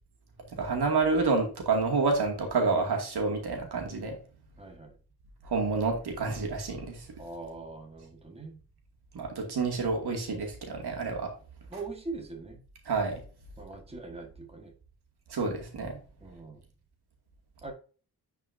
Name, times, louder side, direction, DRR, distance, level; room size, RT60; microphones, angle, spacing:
voice 1, 0.5-4.2 5.4-7.1 9.1-11.3 12.9-13.2 15.3-16.0, right 4 dB, 80° right, 2 dB, 2.3 m, -28 dB
voice 2, 4.6-4.9 7.2-8.6 11.7-12.6 13.6-14.7 16.2-16.6 17.6-17.7, right 3 dB, 15° right, 3 dB, 1.5 m, -42 dB
9.9 x 4.9 x 2.6 m, 0.39 s
wide cardioid pair, 120°, 38 cm